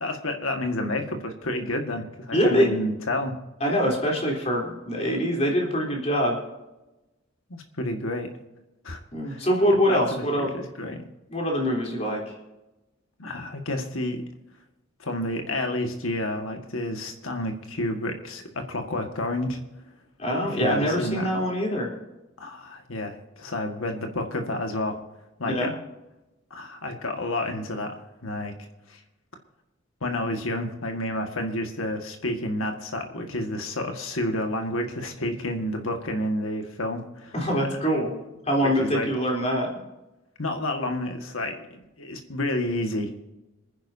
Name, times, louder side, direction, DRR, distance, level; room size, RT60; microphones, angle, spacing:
voice 1, 0.0-3.4 7.5-8.3 8.8-9.0 9.3-10.2 10.5-11.0 13.2-14.2 15.0-19.6 20.4-21.3 22.4-25.0 25.4-25.7 26.5-27.9 28.2-29.0 30.0-37.3 37.7-37.8 38.6-39.1 40.4-43.3, left 1 dB, 90° left, 4 dB, 1.8 m, -30 dB
voice 2, 2.3-2.7 3.6-6.4 9.1-10.5 11.3-12.2 20.2-21.9 25.4-25.7 37.3-38.1 38.5-39.7, equal, 35° left, -1 dB, 3.6 m, -24 dB
26.5 x 10.5 x 2.8 m, 1.0 s
head